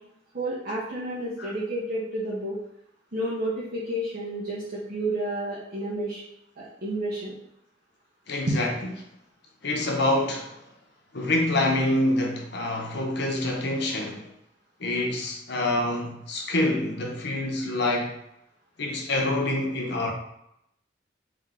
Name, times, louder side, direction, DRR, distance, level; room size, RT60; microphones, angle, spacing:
voice 1, 0.3-2.6 3.1-6.2 6.6-7.3 8.5-8.6, right 1 dB, 50° right, 1.1 m, -30 dB
voice 2, 8.3-8.7 9.6-10.6 11.1-14.3 14.8-18.1 18.8-20.1, left 1 dB, 65° left, 0.8 m, -26 dB
3.6 x 3.2 x 3.7 m
head